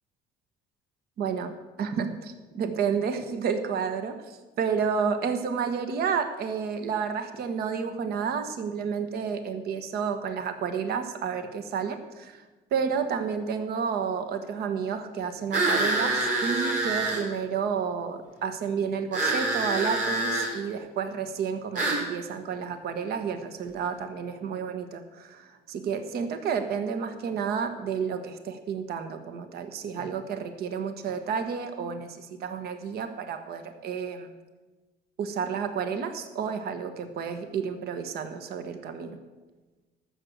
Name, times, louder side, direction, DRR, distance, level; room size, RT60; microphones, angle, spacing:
voice 1, 1.2-12.4 12.7-34.3 35.2-39.2, right 6 dB, 70° right, 9 dB, 1.2 m, -31 dB
sound 1, 15.5-17.2 19.1-20.5 21.7-22.0, right 2 dB, 50° right, 4.2 m, -26 dB
14.0 x 6.7 x 7.9 m, 1.2 s
cardioid pair, 110°, 17 cm